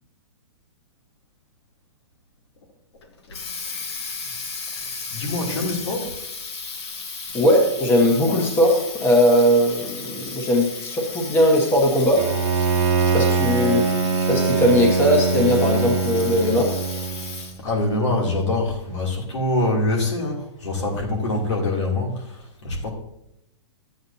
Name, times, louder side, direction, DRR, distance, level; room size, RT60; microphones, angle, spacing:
Water tap faucet, 3.0-17.7, left 4 dB, 65° left, 1.6 m, -35 dB
voice 1, 5.1-6.2 17.6-22.9, left 2 dB, 80° left, -1 dB, 2.9 m, -24 dB
voice 2, 7.3-12.2 13.1-13.9 14.3-16.7, equal, 15° left, 0 dB, 1.2 m, -19 dB
Bowed string instrument, 12.2-17.5, right 5 dB, 35° right, 1.3 m, -22 dB
12.0 x 8.7 x 2.8 m, 0.82 s
hypercardioid pair, 155°, 15 cm